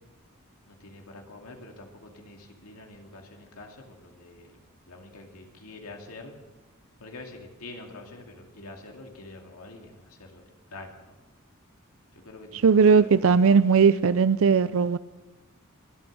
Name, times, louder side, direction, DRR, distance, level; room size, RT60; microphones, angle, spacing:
voice 1, 0.7-4.6 4.9-6.4 7.0-11.2 12.1-13.1, left 2 dB, 75° left, 2.5 m, -46 dB
voice 2, 12.6-15.0, right 5 dB, 65° right, 0.5 m, -18 dB
26.0 x 8.8 x 6.3 m
head